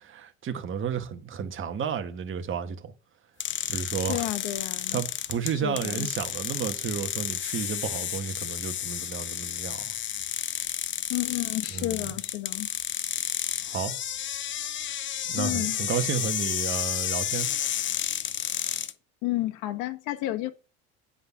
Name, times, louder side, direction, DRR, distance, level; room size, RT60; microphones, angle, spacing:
voice 1, 0.0-2.9 3.7-4.3 4.9-9.9 11.7-12.1 13.6-13.9 15.3-17.5, right 7 dB, 40° right, 1.7 m, -32 dB
sound 1, 3.4-18.9, left 10 dB, 40° left, 0.8 m, -31 dB
voice 2, 4.1-5.0 5.4-6.1 11.1-12.7 15.4-15.8 19.2-20.5, left 16 dB, 75° left, 1.4 m, -31 dB
10.0 x 5.0 x 5.9 m
supercardioid pair, 100°, 31 cm